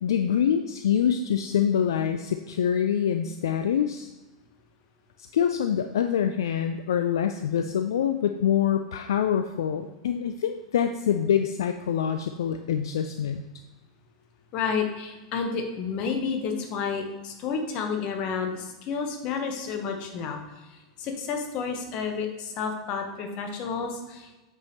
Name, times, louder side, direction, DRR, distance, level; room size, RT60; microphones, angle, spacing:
voice 1, 0.0-4.1 5.3-13.4, left 8 dB, 70° left, 8 dB, 0.3 m, -25 dB
voice 2, 14.5-20.4 21.0-24.4, left 5 dB, 45° left, 4 dB, 1.2 m, -30 dB
8.1 x 5.4 x 3.1 m, 1.1 s
hypercardioid pair, 95°, 2 cm